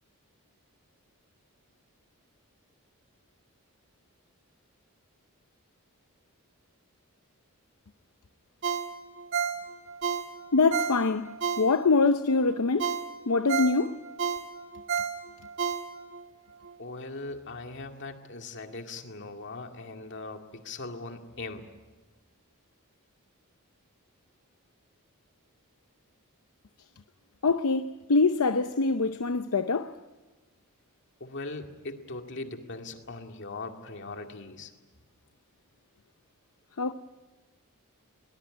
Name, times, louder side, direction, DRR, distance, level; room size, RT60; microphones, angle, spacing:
Ringtone, 8.6-12.1 12.5-12.6 12.8-16.2 16.6-16.7, right 7 dB, 55° right, 2.2 m, -31 dB
voice 1, 10.5-12.9 13.3-13.9 27.4-29.9 36.8-36.9, left 3 dB, 75° left, 0.7 m, -24 dB
voice 2, 16.8-21.6 31.2-34.7, left 3 dB, 55° left, 2.2 m, -40 dB
22.0 x 19.5 x 10.0 m
head